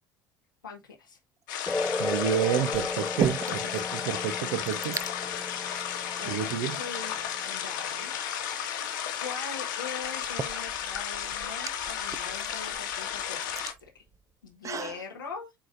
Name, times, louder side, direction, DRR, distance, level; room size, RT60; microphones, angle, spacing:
voice 1, 0.6-1.2 3.3-3.9 6.1-7.2 7.5-14.1 14.4-15.5, left 5 dB, 85° left, 1.3 m, -42 dB
sound 1, 1.5-13.7, left 9 dB, 70° left, 1.7 m, -34 dB
sound 2, 1.5-1.9 2.7-3.8 4.1-4.2 4.4-5.1 5.9-6.0 6.6-7.5 9.2-9.3 10.0-15.0, right 7 dB, 30° right, 0.7 m, -37 dB
sound 3, 1.7-8.7, left 3 dB, 15° left, 0.6 m, -35 dB
voice 2, 2.0-3.4 3.9-5.0 6.3-6.8, right 11 dB, 65° right, 0.9 m, -29 dB
8.7 x 5.0 x 2.6 m
figure-of-eight pair, 65°, 11 cm